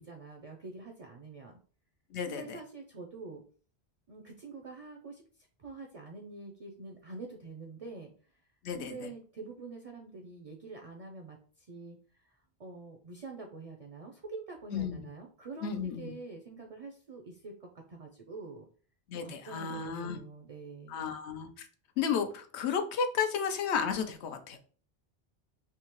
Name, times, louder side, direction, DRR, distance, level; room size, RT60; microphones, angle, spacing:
voice 1, 0.0-1.6 2.2-3.4 4.1-5.2 5.6-8.1 8.7-12.0 12.2-18.7 19.1-21.1, right 3 dB, 50° right, 2 dB, 0.5 m, -46 dB
voice 2, 2.1-2.6 8.6-9.1 14.7-15.0 15.6-16.1 19.1-20.2 20.9-21.7 22.0-24.6, left 6 dB, 85° left, 7 dB, 0.9 m, -33 dB
3.6 x 2.7 x 2.9 m, 0.42 s
omnidirectional pair, 1.1 m